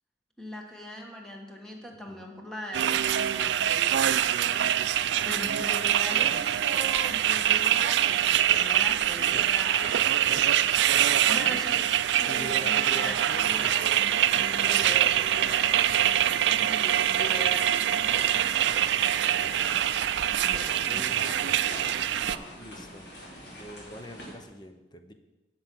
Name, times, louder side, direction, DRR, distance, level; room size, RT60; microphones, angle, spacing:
voice 1, 0.4-4.2 5.2-10.2 11.2-18.4 20.4-20.8, equal, 5° left, 0 dB, 1.4 m, -40 dB
sound 1, 2.7-22.4, right 11 dB, 85° right, 0.4 m, -24 dB
voice 2, 4.5-5.1 9.3-9.5 9.8-10.5 12.3-13.8 14.5-15.2 16.7-17.1 18.1-18.5 19.3-19.6 20.4-21.8 22.5-23.1 23.6-25.1, equal, 25° left, 7 dB, 0.8 m, -44 dB
sound 2, 18.0-24.3, equal, 80° left, 2.9 m, -43 dB
11.5 x 6.1 x 6.1 m, 1.1 s
head